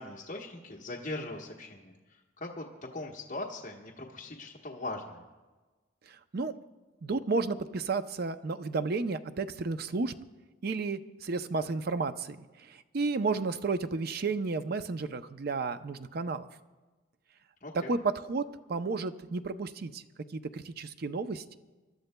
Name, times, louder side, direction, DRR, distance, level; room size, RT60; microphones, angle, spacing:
voice 1, 0.0-2.6 2.9-5.2 17.6-18.0, left 2 dB, 40° left, -2 dB, 1.2 m, -40 dB
voice 2, 7.0-10.1 10.6-12.4 12.9-16.5 17.9-20.0 20.3-21.6, right 4 dB, 50° right, 11 dB, 0.5 m, -32 dB
28.0 x 12.5 x 2.2 m, 1.3 s
head